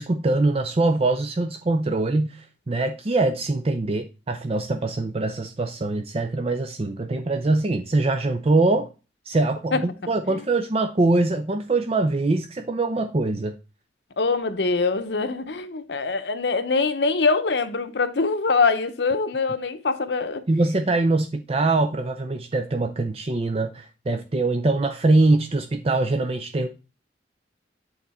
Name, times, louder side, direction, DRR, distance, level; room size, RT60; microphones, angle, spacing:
voice 1, 0.0-8.9 9.3-13.5 20.5-26.7, right 2 dB, 35° right, 0.5 m, -23 dB
voice 2, 14.2-20.4, left 4 dB, 70° left, 0.8 m, -23 dB
8.3 x 4.0 x 4.2 m
head